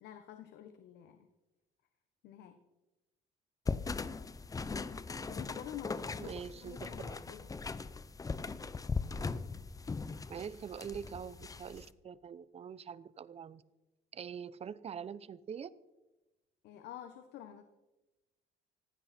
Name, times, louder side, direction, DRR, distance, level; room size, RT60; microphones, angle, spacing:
voice 1, 0.0-1.3 2.2-2.6 5.3-7.5 16.6-17.6, left 10 dB, 80° left, 1.3 m, -49 dB
sound 1, 3.7-11.9, left 4 dB, 20° left, 0.7 m, -39 dB
voice 2, 6.2-7.2 10.3-13.6 14.1-15.7, right 7 dB, 35° right, 0.8 m, -44 dB
19.5 x 15.5 x 4.4 m
cardioid pair, 110°, 17 cm